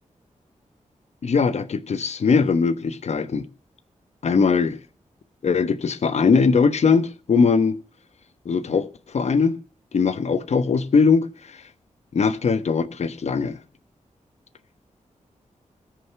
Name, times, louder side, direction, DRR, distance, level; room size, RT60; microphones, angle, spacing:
voice 1, 1.2-3.4 4.2-4.8 5.4-7.8 8.4-8.9 9.1-9.6 9.9-11.3 12.1-13.6, left 5 dB, 60° left, 1.1 m, -20 dB
19.5 x 6.9 x 5.8 m
wide cardioid pair, 150°, 13 cm